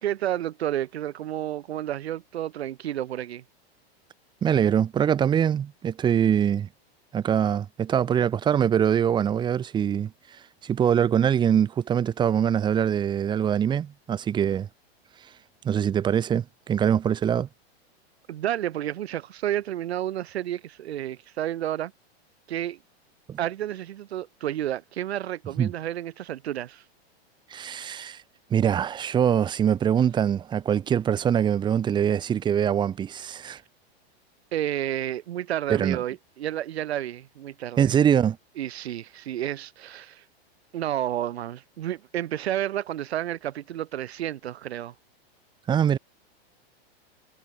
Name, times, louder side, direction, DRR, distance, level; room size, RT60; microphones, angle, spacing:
voice 1, 0.0-3.4 18.3-21.9 22.5-22.8 23.4-26.8 34.5-37.9 38.6-40.2 40.7-44.9, right 12 dB, 80° right, 2.4 m, -31 dB
voice 2, 4.4-6.7 7.1-14.7 15.6-17.5 23.3-23.4 25.6-25.7 27.5-28.2 28.5-33.6 35.7-36.0 37.8-38.4 45.7-46.0, right 8 dB, 15° right, 3.6 m, -23 dB
supercardioid pair, 175°, 31 cm